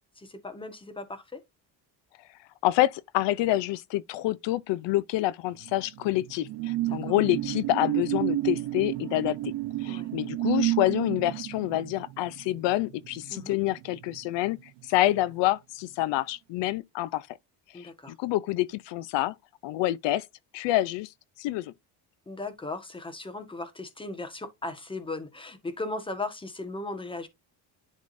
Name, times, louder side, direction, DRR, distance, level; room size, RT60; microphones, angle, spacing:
voice 1, 0.2-1.4 6.8-7.1 9.9-10.1 13.3-13.6 17.7-18.1 22.3-27.3, left 2 dB, 10° left, 1.3 m, -37 dB
voice 2, 2.6-9.5 9.8-17.3 17.7-19.3 19.6-20.3 20.5-21.1 21.4-21.7, left 16 dB, 75° left, 0.6 m, -27 dB
sound 1, 5.6-14.6 14.9-15.2, right 17 dB, 90° right, 0.8 m, -31 dB
10.5 x 3.7 x 2.5 m
cardioid pair, 115°, 43 cm